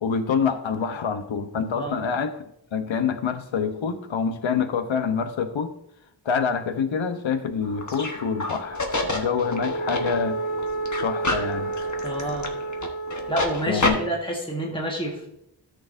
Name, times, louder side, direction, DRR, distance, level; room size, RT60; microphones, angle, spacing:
voice 1, 0.0-2.3 2.7-5.7 6.2-8.8 9.1-10.4 11.0-11.7 13.7-14.0, left 6 dB, 80° left, 8 dB, 0.9 m, -26 dB
sound 1, 7.6-13.9, equal, 40° left, 1.3 m, -28 dB
voice 2, 12.0-12.5 13.3-15.3, right 1 dB, 10° left, -1 dB, 1.6 m, -29 dB
13.0 x 6.6 x 2.6 m, 0.77 s
wide cardioid pair, 80°, 46 cm